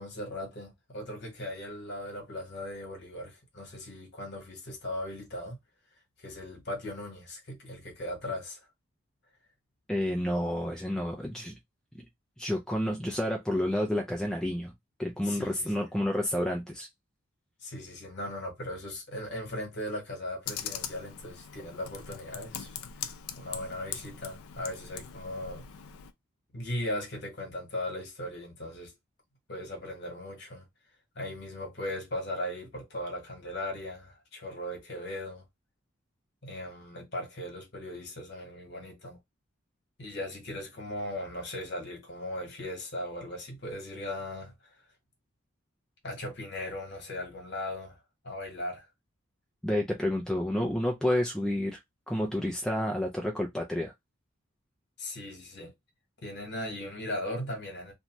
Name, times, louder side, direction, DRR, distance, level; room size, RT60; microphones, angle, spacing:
voice 1, 0.0-5.6 6.2-8.6 15.2-15.8 17.6-23.1 23.4-25.7 26.5-28.9 29.5-30.6 31.1-35.4 36.4-39.2 40.0-44.5 46.0-48.0 48.2-48.8 55.0-55.7 56.2-57.9, left 1 dB, 50° left, 1.2 m, -38 dB
voice 2, 9.9-11.6 11.9-12.0 12.4-14.7 15.0-16.9 49.6-51.8 52.1-53.9, left 1 dB, 5° left, 0.3 m, -30 dB
Computer keyboard, 20.4-26.1, left 8 dB, 80° left, 0.4 m, -41 dB
2.6 x 2.2 x 2.9 m
head